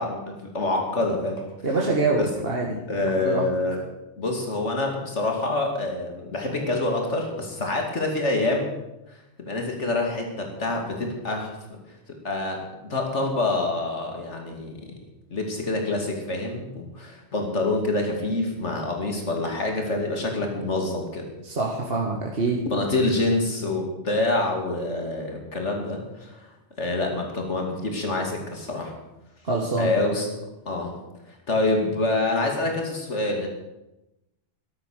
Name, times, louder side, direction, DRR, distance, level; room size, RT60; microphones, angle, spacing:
voice 1, 0.0-1.4 2.2-2.3 2.9-3.8 4.2-8.7 9.4-11.5 12.2-14.8 15.3-21.3 22.7-26.4 26.8-28.9 29.8-30.3 30.7-30.9 31.5-33.5, left 2 dB, 75° left, 2 dB, 2.9 m, -26 dB
voice 2, 1.6-2.8 3.2-3.5 21.4-22.6 29.4-29.9, right 3 dB, 55° right, -2 dB, 2.0 m, -25 dB
13.5 x 12.0 x 6.7 m, 0.94 s
omnidirectional pair, 1.2 m